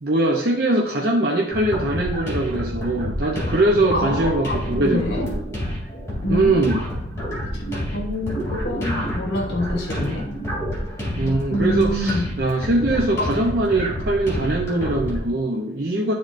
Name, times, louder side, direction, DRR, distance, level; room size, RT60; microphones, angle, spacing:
voice 1, 0.0-5.4 6.3-6.8 11.2-16.1, right 2 dB, 55° right, -1 dB, 0.8 m, -22 dB
sound 1, 1.5-15.3, equal, 15° left, 2.8 m, -28 dB
voice 2, 3.9-4.4 4.8-5.3 6.2-6.6 7.5-7.6 7.9-10.3 11.5-12.3, left 1 dB, 60° left, 1 dB, 1.1 m, -26 dB
11.5 x 3.9 x 2.6 m, 0.75 s
head